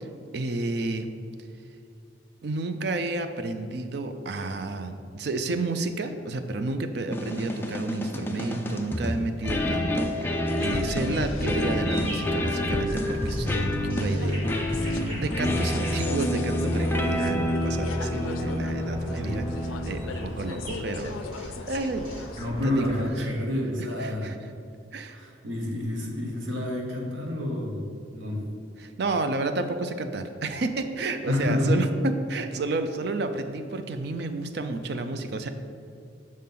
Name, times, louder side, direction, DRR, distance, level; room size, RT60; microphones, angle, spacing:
voice 1, 0.3-1.1 2.4-13.7 14.0-19.5 19.8-22.2 22.6-22.8 23.2-23.3 24.0-24.5 24.9-25.2 28.8-35.5, right 3 dB, 55° right, 8 dB, 0.4 m, -31 dB
sound 1, 7.1-20.6, left 1 dB, 10° left, 0.4 m, -28 dB
sound 2, 10.5-23.5, left 5 dB, 90° left, 0.4 m, -41 dB
sound 3, 11.6-23.0, equal, 25° right, 1.4 m, -40 dB
voice 2, 22.4-24.4 25.1-27.9 28.1-28.4 31.2-31.7, left 1 dB, 80° right, -1 dB, 1.2 m, -29 dB
6.3 x 3.7 x 5.8 m, 2.5 s
head